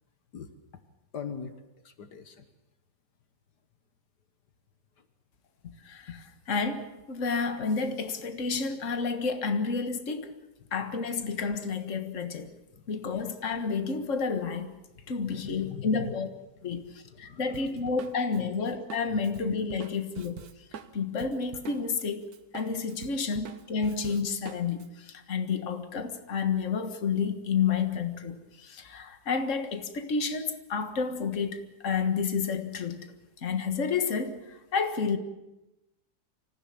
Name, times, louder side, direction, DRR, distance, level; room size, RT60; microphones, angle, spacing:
voice 1, 1.1-2.5 5.0-5.1 10.6-10.7 12.7-12.9 15.0-16.1 16.6-17.8 18.4-18.5 19.1-19.2, left 7 dB, 70° left, 8 dB, 1.9 m, -43 dB
voice 2, 5.8-10.3 10.7-12.5 12.9-14.8 15.1-16.3 16.6-20.4 20.9-22.2 22.5-33.1 33.4-35.2, left 5 dB, 45° left, 7 dB, 1.9 m, -30 dB
Drum kit, 17.5-22.1 22.3-24.9, right 7 dB, 60° right, 1.5 m, -45 dB
25.5 x 15.0 x 8.7 m, 0.99 s
omnidirectional pair, 1.8 m